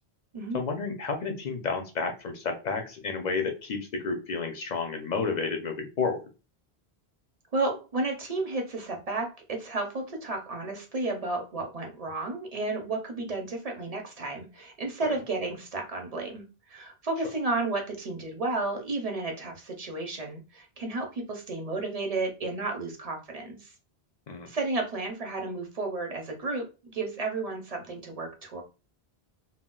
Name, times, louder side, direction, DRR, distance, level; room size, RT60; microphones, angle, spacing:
voice 1, 0.5-6.2 15.0-15.2 24.3-24.5, left 4 dB, 55° left, 4 dB, 0.5 m, -31 dB
voice 2, 7.5-23.7 24.5-28.6, right 3 dB, 45° right, 2 dB, 0.6 m, -32 dB
2.2 x 2.1 x 3.7 m, 0.31 s
omnidirectional pair, 1.1 m